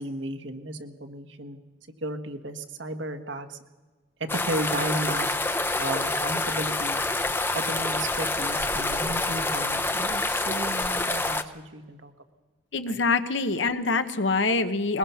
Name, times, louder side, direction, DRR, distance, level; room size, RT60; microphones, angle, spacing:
voice 1, 0.0-1.6 2.0-3.6 4.3-5.3 5.7-7.0 7.5-12.1 12.9-13.0, right 1 dB, 75° right, 7 dB, 1.6 m, -34 dB
sound 1, 4.3-11.4, left 2 dB, 10° left, 0.7 m, -27 dB
voice 2, 12.7-15.0, left 3 dB, 75° left, 10 dB, 1.1 m, -25 dB
21.0 x 21.0 x 5.7 m, 1.3 s
head